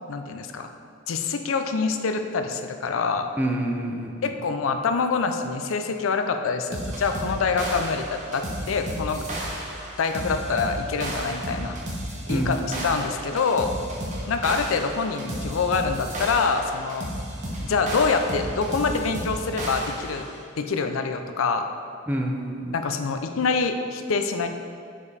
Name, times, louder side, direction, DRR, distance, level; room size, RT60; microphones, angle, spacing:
voice 1, 0.1-0.7 1.1-3.3 4.2-9.2 10.0-11.8 12.3-13.7 14.3-17.1 17.6-20.2 20.6-21.7 22.7-24.5, left 4 dB, 85° left, 6 dB, 0.5 m, -25 dB
voice 2, 3.4-4.3 12.3-12.6 22.1-22.8, right 1 dB, 10° right, 0 dB, 0.5 m, -27 dB
sound 1, 6.7-20.3, right 1 dB, 35° right, 1.1 m, -33 dB
6.9 x 5.0 x 4.2 m, 2.4 s
head